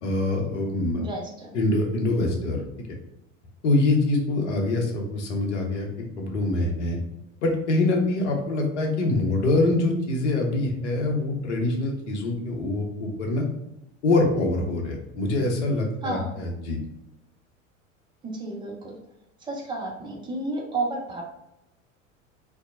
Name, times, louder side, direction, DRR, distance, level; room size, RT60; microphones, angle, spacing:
voice 1, 0.0-1.0 1.5-2.9 3.6-7.0 7.4-13.4 14.0-16.8, left 2 dB, 60° left, 1 dB, 0.7 m, -24 dB
voice 2, 1.0-1.5 16.0-16.3 18.2-19.0 19.4-21.2, right 2 dB, 10° right, -1 dB, 0.5 m, -31 dB
2.7 x 2.1 x 2.5 m, 0.86 s
figure-of-eight pair, 80°, 39 cm